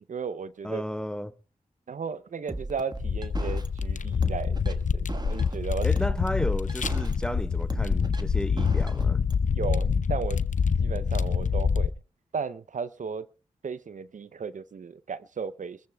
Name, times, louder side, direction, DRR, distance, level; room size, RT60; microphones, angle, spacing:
voice 1, 0.1-0.8 1.9-5.9 9.5-10.4 10.8-11.9 12.3-13.3 13.6-15.8, right 6 dB, 65° right, 0.6 m, -35 dB
voice 2, 0.6-1.3 5.8-9.2, equal, 5° left, 1.0 m, -33 dB
sound 1, 2.5-9.4, right 2 dB, 30° right, 1.5 m, -36 dB
sound 2, 3.0-11.9, left 6 dB, 65° left, 0.7 m, -26 dB
24.0 x 14.5 x 2.3 m
cardioid pair, 45°, 14 cm